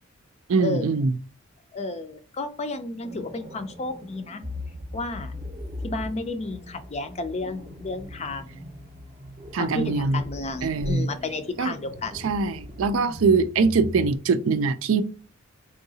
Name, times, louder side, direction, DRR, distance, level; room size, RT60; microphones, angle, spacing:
voice 1, 0.5-1.1 9.5-10.2 10.6-11.1 11.6-11.7 12.2-15.0, right 4 dB, 70° right, 0.4 m, -22 dB
voice 2, 1.7-4.4 4.9-5.3 5.8-8.7 9.5-12.3, left 3 dB, 30° left, 0.4 m, -32 dB
sound 1, 3.0-14.2, left 1 dB, 30° right, 0.7 m, -39 dB
3.8 x 2.7 x 2.7 m
head